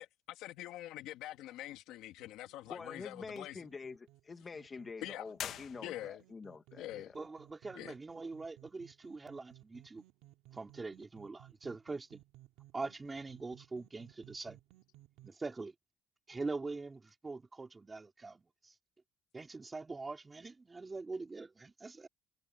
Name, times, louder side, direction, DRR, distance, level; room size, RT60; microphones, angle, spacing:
voice 1, 0.0-3.6 5.0-5.3 5.8-6.2 6.8-7.1 7.7-7.9, left 14 dB, 80° left, 2.3 m, -45 dB
sound 1, 2.2-15.3, right 16 dB, 85° right, 3.0 m, -61 dB
voice 2, 2.7-7.2, left 4 dB, 30° left, 2.3 m, -47 dB
sound 2, 5.3-6.4, left 10 dB, 60° left, 1.7 m, -44 dB
voice 3, 7.1-10.0 10.5-12.2 12.7-14.6 15.2-15.7 16.3-18.7 19.3-22.1, right 3 dB, 20° right, 2.8 m, -43 dB
cardioid pair, 110°, 0 cm